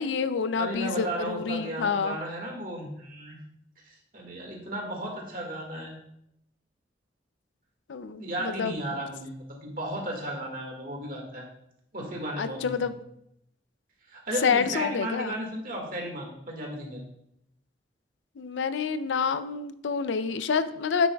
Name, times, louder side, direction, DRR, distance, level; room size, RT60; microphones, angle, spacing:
voice 1, 0.0-2.2 7.9-8.7 12.4-13.0 14.4-15.4 18.4-21.1, left 5 dB, 80° left, 12 dB, 0.5 m, -28 dB
voice 2, 0.6-3.4 3.9-6.0 8.2-11.4 11.9-12.9 14.1-17.0, right 1 dB, 50° right, 0 dB, 1.8 m, -35 dB
9.2 x 7.7 x 2.3 m, 0.77 s
head